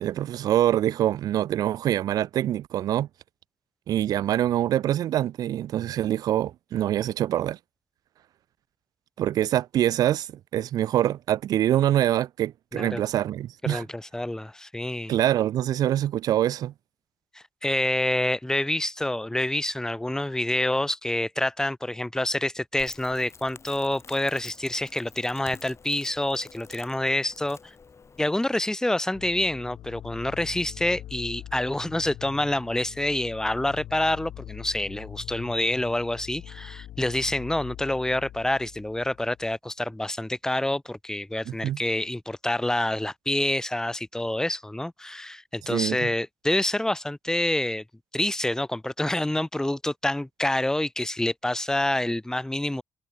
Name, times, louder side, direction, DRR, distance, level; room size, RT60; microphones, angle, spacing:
voice 1, 0.0-3.1 3.9-7.6 9.2-13.8 15.1-16.7 41.5-41.8 45.7-46.1, right 12 dB, 65° right, 0.3 m, -25 dB
voice 2, 13.6-15.1 17.3-27.7 28.2-47.8 48.1-52.8, left 1 dB, 10° left, 0.9 m, -27 dB
Crackle, 22.8-28.2, left 5 dB, 40° left, 7.4 m, -49 dB
sound 1, 29.1-39.6, left 12 dB, 70° left, 0.7 m, -43 dB
supercardioid pair, 55°, 7 cm